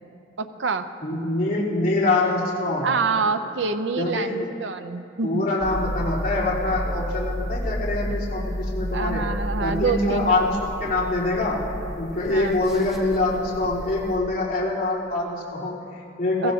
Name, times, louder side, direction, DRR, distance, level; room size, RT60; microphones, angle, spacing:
voice 1, 0.4-0.9 2.8-5.4 8.9-10.4 12.3-12.5 16.4-16.5, right 4 dB, 70° right, 9 dB, 0.6 m, -26 dB
voice 2, 1.0-2.9 4.0-4.5 5.2-9.3 9.6-11.7 11.9-16.5, left 2 dB, 50° left, -9 dB, 3.8 m, -25 dB
sound 1, 5.6-14.2, equal, ahead, 1.8 m, -31 dB
24.0 x 16.0 x 2.8 m, 2.8 s
head